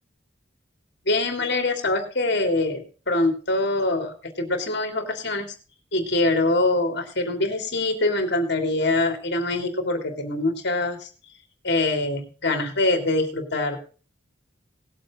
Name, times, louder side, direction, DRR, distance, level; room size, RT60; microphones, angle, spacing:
voice 1, 1.1-5.5 5.9-11.1 11.6-13.8, left 2 dB, 60° left, 5 dB, 2.9 m, -24 dB
19.0 x 7.7 x 3.8 m, 0.38 s
head